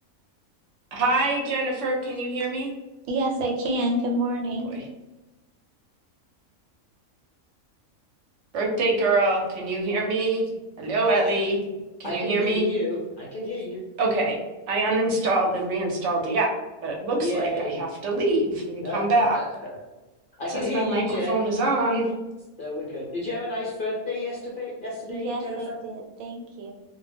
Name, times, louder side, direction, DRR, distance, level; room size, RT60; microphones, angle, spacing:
voice 1, 0.9-2.7 8.5-10.4 10.8-11.6 12.0-12.6 14.0-14.4 14.7-16.5 16.8-19.4 20.5-22.1, right 2 dB, 65° right, -1 dB, 0.9 m, -24 dB
voice 2, 3.0-4.7 25.1-26.7, right 1 dB, 90° right, 1 dB, 1.1 m, -28 dB
voice 3, 12.0-13.8 17.2-17.8 18.8-19.8 20.4-21.4 22.6-25.8, left 1 dB, 60° left, -5 dB, 0.5 m, -31 dB
2.3 x 2.1 x 3.3 m, 1.1 s
omnidirectional pair, 1.4 m